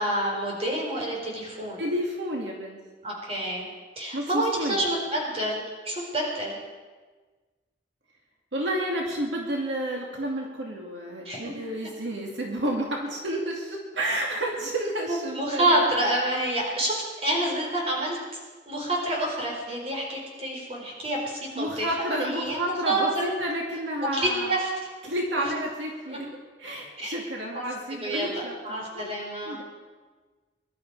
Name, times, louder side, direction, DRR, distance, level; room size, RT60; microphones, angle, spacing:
voice 1, 0.0-1.8 3.0-3.7 4.0-6.6 11.2-11.4 15.1-18.2 18.7-23.3 24.1-24.7 25.4-25.5 26.1-26.2 27.0-27.1 27.5-27.6 28.0-29.6, right 1 dB, 35° right, -2 dB, 4.3 m, -28 dB
voice 2, 1.8-2.8 4.1-4.8 8.5-15.9 21.5-24.5 25.0-26.3 26.6-29.0 29.5-29.6, right 1 dB, 80° right, -1 dB, 2.5 m, -30 dB
22.0 x 12.0 x 4.8 m, 1.4 s
head